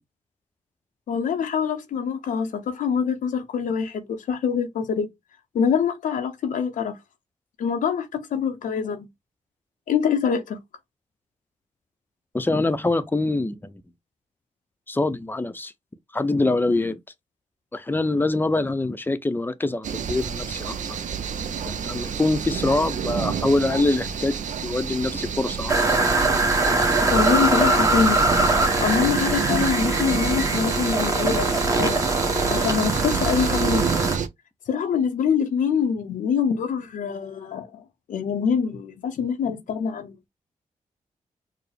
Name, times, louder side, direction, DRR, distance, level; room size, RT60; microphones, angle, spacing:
voice 1, 1.1-5.1 5.5-7.0 7.6-9.1 9.9-10.6 27.1-28.2 28.8-32.0 32.5-33.9 34.7-37.8 38.1-40.2, left 6 dB, 90° left, 0.6 m, -25 dB
voice 2, 12.3-13.7 14.9-15.7 16.1-17.0 17.7-21.0 21.6-24.3 24.6-25.7, left 2 dB, 15° left, 0.6 m, -24 dB
sound 1, 19.8-34.3, right 7 dB, 70° right, 0.5 m, -29 dB
sound 2, 25.7-34.2, right 2 dB, 25° right, 1.1 m, -22 dB
4.6 x 2.0 x 3.3 m
cardioid pair, 65°, 13 cm